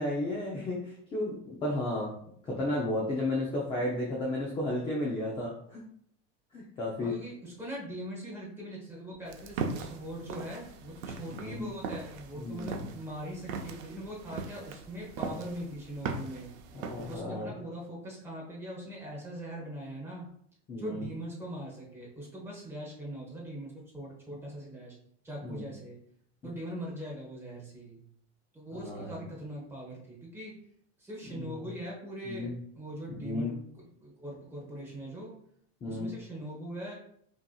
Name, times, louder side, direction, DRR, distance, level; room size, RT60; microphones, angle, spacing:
voice 1, 0.0-2.1 2.4-5.8 6.5-7.1 11.3-11.6 12.4-12.9 16.9-17.5 20.7-21.1 25.4-25.7 28.7-29.1 31.2-31.7 32.3-32.5 33.1-33.5 35.8-36.1, left 1 dB, 15° left, -3 dB, 0.5 m, -33 dB
voice 2, 7.0-16.5 17.1-20.3 20.7-25.0 25.2-26.0 26.4-28.0 28.5-30.6 31.0-32.5 32.7-35.4 35.8-36.9, equal, 5° right, -4 dB, 1.0 m, -41 dB
sound 1, 9.3-17.2, right 5 dB, 70° right, 0.7 m, -39 dB
5.4 x 2.8 x 2.3 m, 0.67 s
supercardioid pair, 160°, 36 cm